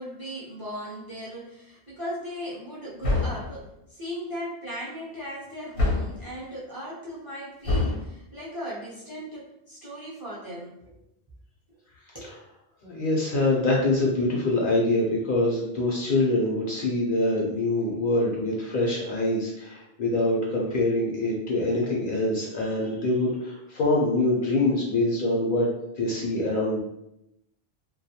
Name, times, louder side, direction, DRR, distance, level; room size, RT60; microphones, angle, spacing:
voice 1, 0.0-11.0 12.1-12.3, equal, 25° right, -6 dB, 0.5 m, -37 dB
sound 1, 3.0-3.6 5.8-6.3 7.6-8.1, left 2 dB, 75° left, 1.0 m, -25 dB
voice 2, 12.8-25.7 26.0-26.8, left 2 dB, 60° left, -3 dB, 0.7 m, -24 dB
2.3 x 2.2 x 2.7 m, 0.83 s
omnidirectional pair, 1.2 m